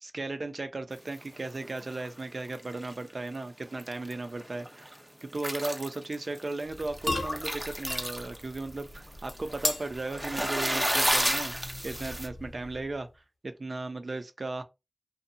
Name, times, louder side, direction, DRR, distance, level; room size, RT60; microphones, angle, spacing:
voice 1, 0.0-5.0 5.2-11.5 11.8-13.1 13.4-14.6, right 2 dB, 70° right, 0.4 m, -36 dB
sound 1, 1.1-2.2 2.5-3.1 3.6-4.1 4.4-5.0 5.3-12.3, equal, 15° right, 0.5 m, -32 dB
sound 2, 6.6-13.0, left 2 dB, 85° left, 0.6 m, -38 dB
2.7 x 2.1 x 2.6 m
wide cardioid pair, 50°, 0 cm